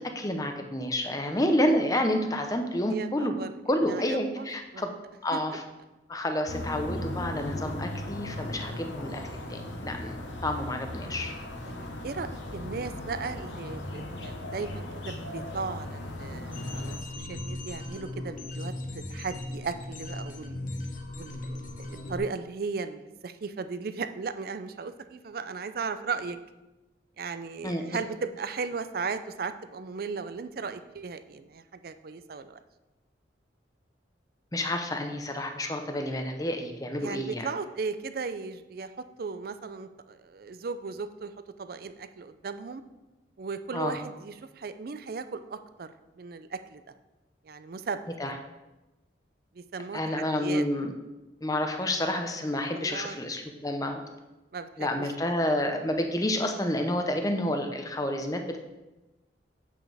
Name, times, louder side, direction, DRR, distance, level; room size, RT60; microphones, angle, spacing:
voice 1, 0.0-3.4 3.7-4.9 5.2-5.6 6.1-9.2 9.5-11.3 27.6-27.8 34.5-37.5 43.7-44.0 48.2-48.3 49.9-50.9 51.4-54.0 54.8-58.6, left 1 dB, 20° left, 5 dB, 0.7 m, -29 dB
voice 2, 2.9-3.5 3.8-4.8 5.3-5.4 8.7-8.9 11.6-18.7 19.1-20.6 21.2-26.4 27.2-32.6 37.0-41.3 41.6-42.8 43.4-46.8 47.4-48.0 49.5-50.6 52.7-53.2 54.5-55.1, right 4 dB, 55° right, 11 dB, 0.4 m, -36 dB
sound 1, 6.5-17.0, left 1 dB, 85° left, 1.0 m, -37 dB
sound 2, 16.5-22.2, left 1 dB, 45° left, 0.9 m, -37 dB
8.0 x 6.3 x 3.4 m, 1.0 s
head